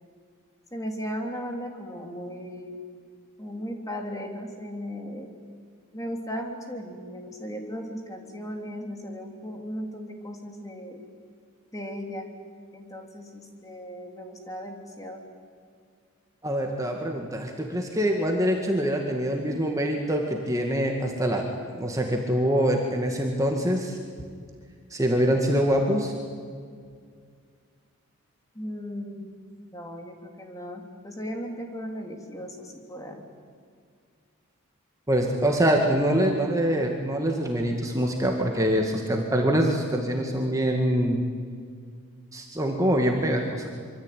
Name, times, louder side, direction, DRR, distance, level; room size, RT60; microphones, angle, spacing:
voice 1, 0.7-2.8 3.4-5.3 5.9-11.0 11.7-12.3 12.7-15.2 28.5-29.3 29.7-33.2, equal, 15° left, 3 dB, 3.1 m, -36 dB
voice 2, 16.4-21.4 21.7-24.0 24.9-26.1 35.1-41.2 42.3-43.7, equal, 15° right, 1 dB, 2.1 m, -24 dB
25.5 x 24.5 x 9.3 m, 2.1 s
head